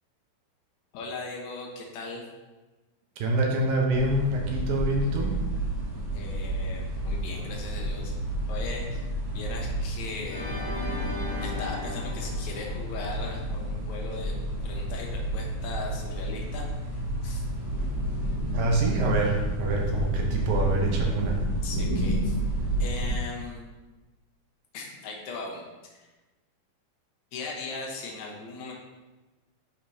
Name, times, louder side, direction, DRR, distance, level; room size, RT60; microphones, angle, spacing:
voice 1, 0.9-2.2 6.1-8.1 8.5-10.5 11.4-16.6 17.2-17.4 21.6-22.4 22.8-23.6 24.7-26.1 27.3-28.7, left 3 dB, 65° left, -1 dB, 2.0 m, -38 dB
voice 2, 3.2-5.3 18.5-21.4, right 2 dB, 75° right, 0 dB, 2.6 m, -26 dB
sound 1, 3.9-23.1, right 1 dB, 25° right, 2.6 m, -30 dB
Organ, 10.3-13.4, left 3 dB, 90° left, 3.6 m, -35 dB
11.0 x 5.1 x 2.8 m, 1.2 s
omnidirectional pair, 4.4 m